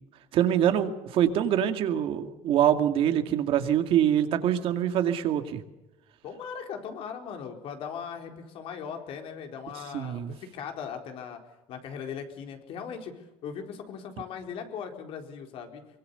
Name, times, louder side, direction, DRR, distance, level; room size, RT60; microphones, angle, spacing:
voice 1, 0.3-5.6 9.9-10.3, right 10 dB, 55° right, 7 dB, 2.3 m, -24 dB
voice 2, 6.2-11.4 11.7-16.0, left 7 dB, 55° left, 4 dB, 4.3 m, -39 dB
24.0 x 23.5 x 7.0 m, 0.98 s
cardioid pair, 155°, 11 cm